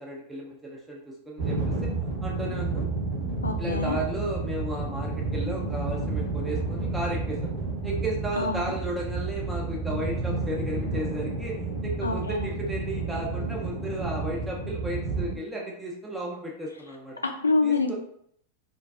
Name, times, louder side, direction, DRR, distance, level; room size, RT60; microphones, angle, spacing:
voice 1, 0.0-1.8 2.2-2.9 3.6-7.5 7.8-11.6 11.8-17.2 17.6-18.0, right 1 dB, 10° right, -2 dB, 0.5 m, -34 dB
sound 1, 1.4-15.4, right 3 dB, 60° right, 0.9 m, -31 dB
voice 2, 3.4-4.0 8.4-8.6 12.0-12.5 17.2-17.9, left 3 dB, 80° left, 4 dB, 0.3 m, -26 dB
2.5 x 2.2 x 2.3 m, 0.67 s
figure-of-eight pair, 90°, 0 cm